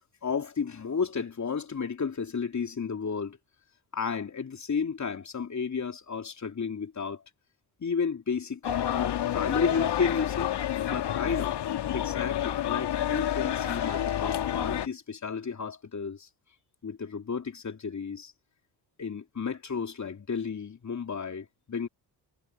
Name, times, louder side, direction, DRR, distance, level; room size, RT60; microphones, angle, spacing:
voice 1, 0.2-3.4 3.9-7.2 7.8-10.5 10.9-11.6 11.9-16.3 16.8-18.3 19.0-21.9, left 6 dB, 35° left, 3.1 m, -32 dB
sound 1, 8.6-14.9, left 11 dB, 60° left, 2.4 m, -29 dB
hypercardioid pair, 50°, 47 cm